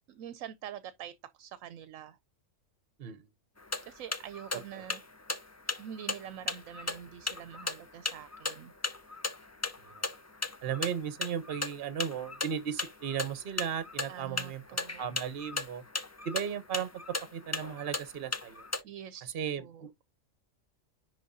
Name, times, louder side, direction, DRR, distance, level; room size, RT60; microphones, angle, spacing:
voice 1, 0.1-2.2 3.9-5.0 5.8-8.7 14.1-15.0 18.8-20.0, right 9 dB, 80° right, 1.0 m, -45 dB
sound 1, 3.6-18.8, left 2 dB, 25° left, 0.4 m, -36 dB
voice 2, 10.6-14.6 15.0-15.8 16.2-18.7 19.3-19.9, right 8 dB, 50° right, 1.0 m, -36 dB
10.0 x 3.8 x 2.6 m
omnidirectional pair, 1.4 m